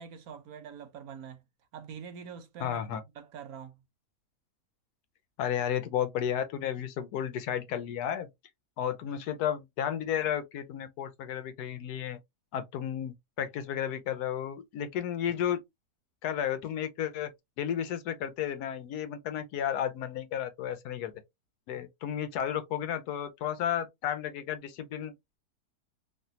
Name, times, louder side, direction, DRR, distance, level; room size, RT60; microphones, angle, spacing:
voice 1, 0.0-1.4 1.7-3.8 9.0-9.2, right 6 dB, 70° right, 1.1 m, -45 dB
voice 2, 2.6-3.0 5.4-8.3 8.8-12.2 12.5-15.6 16.2-17.3 17.6-21.1 21.7-25.1, left 9 dB, 75° left, 1.1 m, -33 dB
3.2 x 2.5 x 2.6 m
omnidirectional pair, 1.7 m